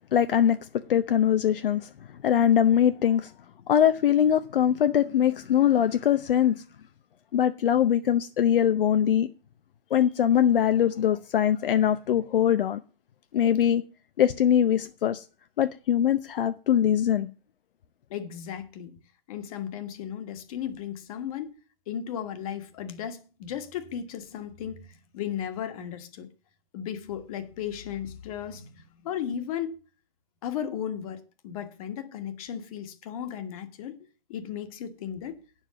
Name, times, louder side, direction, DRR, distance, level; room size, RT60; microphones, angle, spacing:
voice 1, 0.1-0.6 0.9-1.9 2.2-3.3 3.7-6.6 7.3-9.3 9.9-12.8 13.3-13.8 14.2-15.2 15.6-17.3, left 9 dB, 65° left, 0.8 m, -22 dB
voice 2, 18.1-19.0 19.3-21.5 21.9-26.3 26.7-29.8 30.4-33.9 34.3-35.4, left 9 dB, 35° left, 1.5 m, -35 dB
9.2 x 7.3 x 6.9 m
hypercardioid pair, 160°, 29 cm